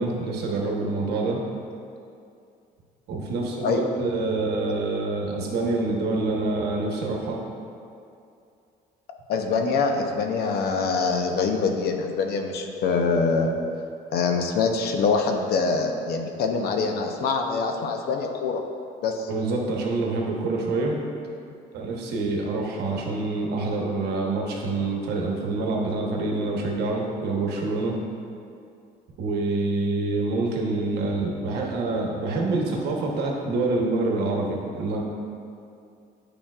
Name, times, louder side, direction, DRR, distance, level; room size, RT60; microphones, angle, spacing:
voice 1, 0.0-1.4 3.1-7.4 19.3-21.0 21.7-27.9 29.2-35.0, right 3 dB, 75° right, -1 dB, 1.1 m, -26 dB
voice 2, 9.3-13.5 14.1-18.6 19.0-19.3, left 4 dB, 70° left, 4 dB, 0.7 m, -24 dB
8.8 x 5.1 x 2.4 m, 2.5 s
cardioid pair, 110°, 17 cm